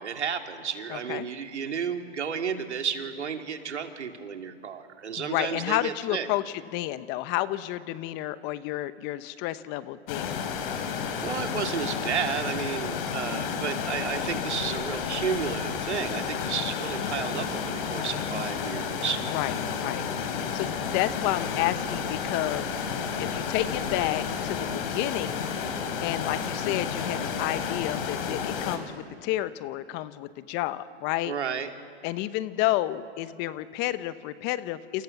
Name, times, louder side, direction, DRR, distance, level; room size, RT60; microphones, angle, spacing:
voice 1, 0.0-6.3 11.2-19.2 31.2-31.7, right 7 dB, 80° right, 5 dB, 2.9 m, -32 dB
voice 2, 0.9-1.3 5.2-6.4 6.7-10.3 19.3-20.0 20.3-22.7 23.2-25.4 26.0-31.3 32.0-35.0, left 15 dB, 30° left, 14 dB, 1.0 m, -30 dB
sound 1, 10.1-28.8, left 6 dB, 50° left, 4.0 m, -31 dB
28.5 x 28.5 x 7.3 m, 2.3 s
hypercardioid pair, 125°, 34 cm